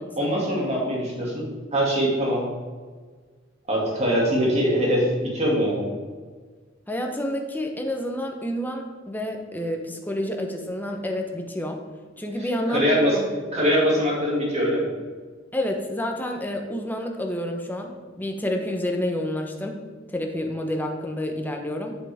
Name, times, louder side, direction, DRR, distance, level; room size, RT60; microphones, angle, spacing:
voice 1, 0.2-1.5 1.7-2.4 3.7-5.9 12.7-13.2 13.5-14.9, equal, 35° right, -3 dB, 2.4 m, -22 dB
voice 2, 6.9-11.8 12.2-12.8 13.1-13.3 15.5-19.8 20.1-22.0, left 1 dB, 10° left, 2 dB, 0.9 m, -29 dB
8.5 x 6.9 x 3.5 m, 1.5 s
head